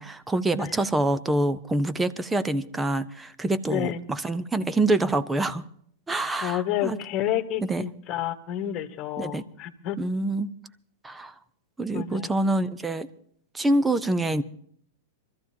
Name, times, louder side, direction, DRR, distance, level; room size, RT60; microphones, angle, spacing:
voice 1, 0.0-5.6 6.1-7.0 7.7-7.8 9.2-9.4 10.0-10.5 11.0-11.3 11.8-13.1 13.5-14.4, right 2 dB, 10° right, 0.9 m, -26 dB
voice 2, 3.7-4.0 6.4-10.0 11.9-12.3, left 11 dB, 40° left, 1.7 m, -30 dB
24.5 x 14.0 x 2.9 m
hypercardioid pair, 115°, 0 cm